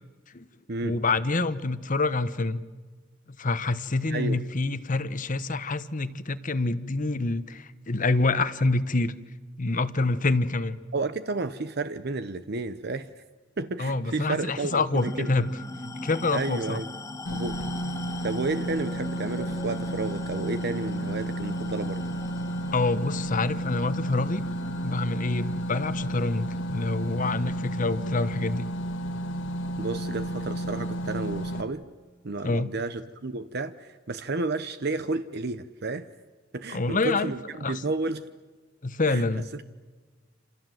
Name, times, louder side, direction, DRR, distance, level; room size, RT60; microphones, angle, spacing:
voice 1, 0.8-2.7 3.3-9.1 9.6-10.8 13.8-15.5 15.8-16.8 22.7-24.4 24.8-28.7 32.4-32.7 36.7-37.3 37.6-37.8 38.8-39.5, left 3 dB, 45° left, 12 dB, 1.1 m, -27 dB
voice 2, 4.1-4.4 10.9-13.2 13.6-15.3 16.3-16.9 17.3-17.6 18.2-22.0 29.8-31.8 32.2-36.1 36.5-37.4 37.7-38.3 39.1-39.2, right 3 dB, 55° right, 11 dB, 0.9 m, -31 dB
sound 1, 15.0-29.8, left 2 dB, 15° left, 0.8 m, -42 dB
sound 2, 17.3-31.6, right 1 dB, 75° left, 1.9 m, -32 dB
28.0 x 27.0 x 7.8 m, 1.4 s
head